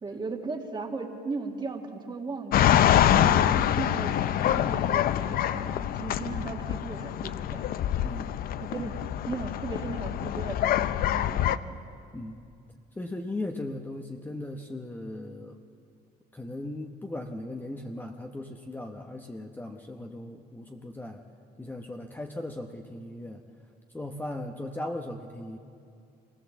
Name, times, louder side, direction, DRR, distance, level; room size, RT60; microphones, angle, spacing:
voice 1, 0.0-7.7 8.6-9.0 9.3-11.8, right 4 dB, 25° right, 2 dB, 2.1 m, -37 dB
sound 1, 2.5-11.6, left 11 dB, 60° left, 0.6 m, -25 dB
voice 2, 8.0-8.4 8.8-8.9 12.1-12.4 13.0-15.5 16.3-21.2 21.6-23.4 23.9-25.6, left 1 dB, 10° left, 2 dB, 1.1 m, -38 dB
25.0 x 18.5 x 7.2 m, 2.5 s
cardioid pair, 110°, 17 cm